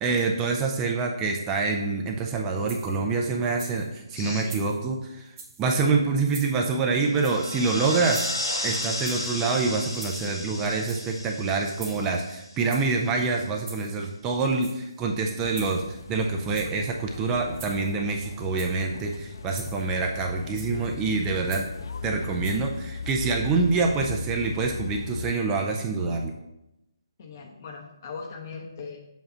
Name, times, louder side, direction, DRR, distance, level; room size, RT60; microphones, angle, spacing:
voice 1, 0.0-5.3 5.6-8.2 8.6-15.8 16.1-21.6 22.0-26.3, right 4 dB, 15° right, 2 dB, 0.5 m, -26 dB
sound 1, 2.7-3.1 3.4-3.9 4.4-4.8 5.3-5.7 6.2-6.6 7.2-7.6 8.0-8.6 9.0-9.4 9.9-10.4 10.7-11.2 11.8-12.2 12.7-13.0 13.6-14.0 14.5-15.0 15.5-16.0 16.5-16.9 17.5-18.0 18.4-18.9 19.5-19.9 20.6-20.9 21.5-21.8 22.4-22.6, right 4 dB, 30° right, 1.1 m, -44 dB
voice 2, 4.1-4.6 27.2-29.0, left 4 dB, 40° left, 1 dB, 0.8 m, -39 dB
sound 2, 7.1-12.9, left 1 dB, 80° left, 2.0 m, -33 dB
sound 3, 15.4-25.3, left 5 dB, 60° left, 0.3 m, -38 dB
7.1 x 2.5 x 5.6 m, 0.89 s
figure-of-eight pair, 155°, 3 cm